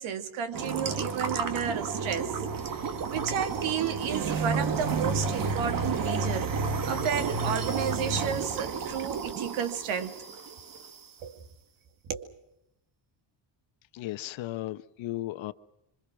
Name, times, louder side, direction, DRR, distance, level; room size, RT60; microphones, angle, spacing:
voice 1, 0.0-2.4 2.6-6.5 6.8-10.2 11.2-11.4 12.1-12.3, right 7 dB, 75° right, 2.5 m, -32 dB
sound 1, 0.5-11.0, right 5 dB, 40° right, 2.0 m, -31 dB
voice 2, 13.9-15.5, left 15 dB, 70° left, 1.1 m, -35 dB
27.0 x 25.0 x 6.1 m
cardioid pair, 160°, 48 cm